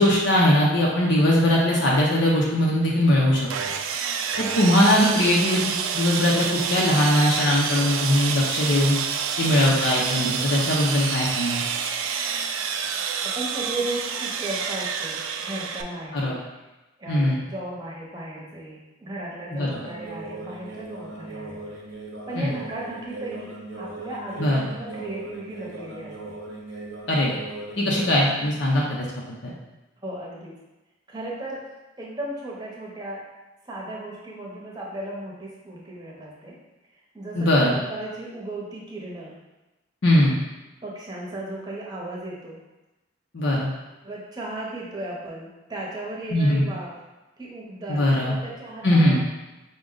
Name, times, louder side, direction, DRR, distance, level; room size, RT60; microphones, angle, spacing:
voice 1, 0.0-3.5 4.4-5.6 5.9-9.0 9.4-11.6 16.1-16.4 17.1-17.4 19.5-19.7 22.3-22.5 24.4-24.7 27.1-27.3 27.8-29.1 29.4-29.5 37.3-37.8 40.0-40.4 43.3-43.7 46.3-46.6 47.9-48.3 48.8-49.2, left 1 dB, 65° left, -4 dB, 0.6 m, -20 dB
Sawing, 3.5-15.8, right 7 dB, 85° right, 0.3 m, -28 dB
voice 2, 13.2-16.4 17.0-21.6 22.3-26.4 30.0-30.5 31.1-31.6 32.0-33.2 33.6-36.5 37.1-39.3 40.8-42.6 44.0-46.9 47.4-49.2, right 1 dB, 20° right, -4 dB, 0.8 m, -35 dB
sound 1, 19.7-28.5, right 2 dB, 65° right, 0.8 m, -38 dB
4.9 x 2.2 x 3.7 m, 1.1 s
head